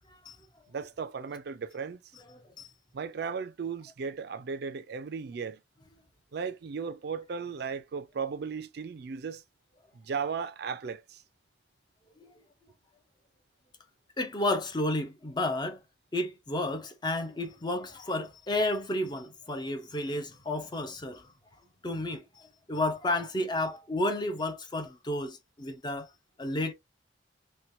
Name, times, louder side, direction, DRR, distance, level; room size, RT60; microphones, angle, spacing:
voice 1, 0.7-2.0 2.9-5.6 6.3-9.4 9.9-11.2, right 5 dB, 60° right, 0.4 m, -36 dB
voice 2, 2.3-2.7 12.2-12.3 14.2-15.8 16.1-21.3 21.8-26.1 26.4-26.7, left 1 dB, 25° left, 0.5 m, -32 dB
3.0 x 2.2 x 2.6 m
head